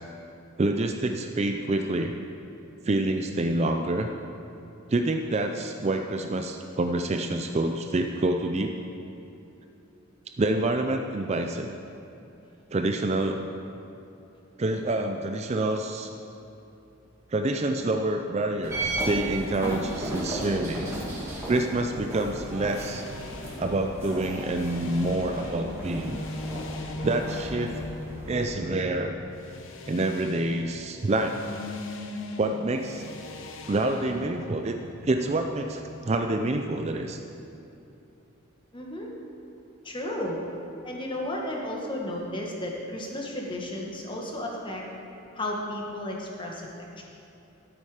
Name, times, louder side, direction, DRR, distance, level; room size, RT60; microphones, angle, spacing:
voice 1, 0.6-2.1 2.8-4.1 4.9-8.7 10.4-11.7 12.7-13.4 14.6-16.1 17.3-20.9 21.5-23.0 23.6-26.2 27.0-27.8 28.3-29.2 29.9-31.4 32.4-33.1 33.7-34.8 35.0-37.2, right 2 dB, 30° right, 5 dB, 0.4 m, -27 dB
sound 1, 18.6-28.4, right 1 dB, 15° right, 2.4 m, -35 dB
sound 2, 22.4-36.0, left 2 dB, 65° left, 0.8 m, -40 dB
voice 2, 38.7-39.1 39.8-40.4 40.8-44.8 45.3-46.6 47.0-47.1, left 1 dB, 25° left, -1 dB, 1.5 m, -33 dB
12.0 x 8.6 x 4.9 m, 2.8 s
head